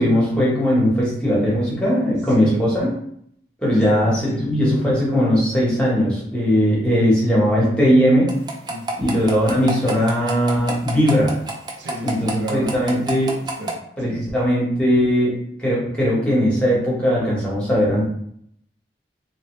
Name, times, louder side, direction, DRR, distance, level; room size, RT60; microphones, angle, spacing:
voice 1, 0.0-2.9 3.6-4.1 4.4-8.3 9.0-11.3 12.0-13.3 14.0-18.0, equal, 5° left, -6 dB, 1.0 m, -19 dB
voice 2, 2.3-2.7 3.7-4.5 8.7-9.1 11.8-13.1 13.4-14.3, right 1 dB, 80° right, 0 dB, 0.7 m, -33 dB
sound 1, 8.3-13.7, right 2 dB, 25° right, 0.4 m, -28 dB
3.0 x 2.7 x 3.1 m, 0.70 s
head